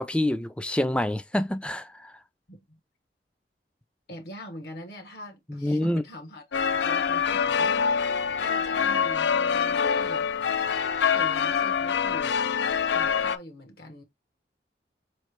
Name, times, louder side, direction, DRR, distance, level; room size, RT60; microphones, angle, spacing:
voice 1, 0.0-2.1 5.5-6.0, left 1 dB, 5° left, 0.3 m, -27 dB
voice 2, 2.5-2.8 4.1-10.2 11.0-12.4 12.9-14.0, equal, 65° left, 1.0 m, -43 dB
sound 1, 6.5-13.4, left 6 dB, 85° left, 0.4 m, -25 dB
4.9 x 3.1 x 3.1 m
head